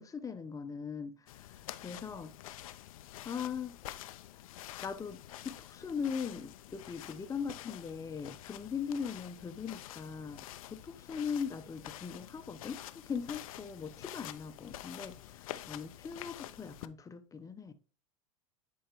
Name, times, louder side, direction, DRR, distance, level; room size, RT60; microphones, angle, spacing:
voice 1, 0.0-1.5 1.8-2.3 3.2-3.8 4.8-12.8 13.1-17.7, left 6 dB, 20° left, 0.8 m, -40 dB
sound 1, 1.3-16.9, left 14 dB, 75° left, 0.6 m, -48 dB
10.0 x 4.7 x 3.0 m
hypercardioid pair, 100°, 18 cm